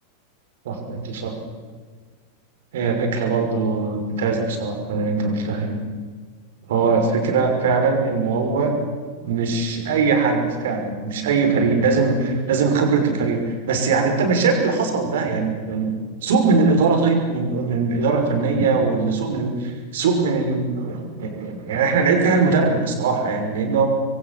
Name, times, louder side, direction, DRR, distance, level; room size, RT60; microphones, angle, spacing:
voice 1, 0.6-1.3 2.7-5.8 6.7-8.7 9.2-15.9 16.2-23.9, right 4 dB, 60° right, 4 dB, 5.8 m, -21 dB
27.0 x 22.5 x 7.6 m, 1.5 s
figure-of-eight pair, 90°, 0 cm